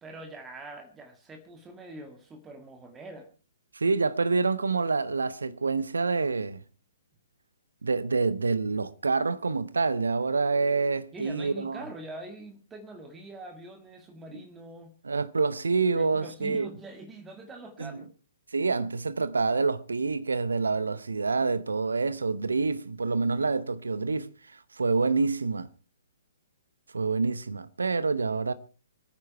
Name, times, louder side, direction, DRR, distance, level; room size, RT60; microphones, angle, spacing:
voice 1, 0.0-3.3 11.1-15.0 15.9-18.1, right 2 dB, 10° right, 2.0 m, -44 dB
voice 2, 3.7-6.6 7.8-11.8 14.3-14.4 15.0-16.7 17.8-18.0 18.5-25.7 26.9-28.5, right 4 dB, 70° right, 1.0 m, -27 dB
25.5 x 9.8 x 4.5 m
figure-of-eight pair, 125°, 0 cm